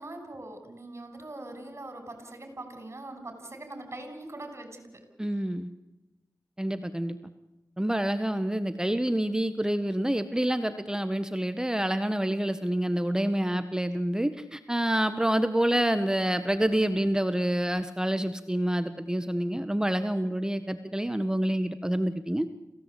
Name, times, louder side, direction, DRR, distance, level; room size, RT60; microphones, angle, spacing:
voice 1, 0.0-5.1 5.3-5.4, right 2 dB, 45° right, 7 dB, 6.4 m, -42 dB
voice 2, 5.2-5.7 6.6-7.2 7.8-22.5, right 1 dB, 10° right, 10 dB, 1.4 m, -27 dB
27.0 x 17.0 x 8.5 m, 0.98 s
cardioid pair, 55°, 6 cm